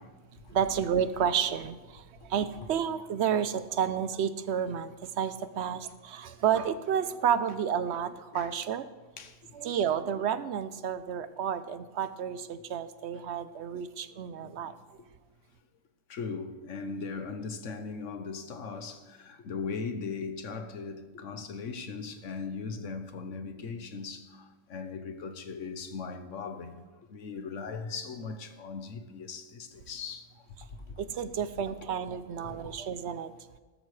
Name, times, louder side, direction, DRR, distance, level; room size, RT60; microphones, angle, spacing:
voice 1, 0.0-0.6 2.6-2.7 8.3-8.5 9.2-9.7 12.7-12.8 13.1-13.2 14.3-14.7 16.1-26.7 27.1-30.4 30.7-31.0 32.4-32.8, left 4 dB, 80° left, 1.3 m, -39 dB
voice 2, 0.5-8.9 9.5-14.7 31.0-33.3, right 8 dB, 65° right, 0.8 m, -31 dB
15.0 x 12.5 x 3.2 m
omnidirectional pair, 1.3 m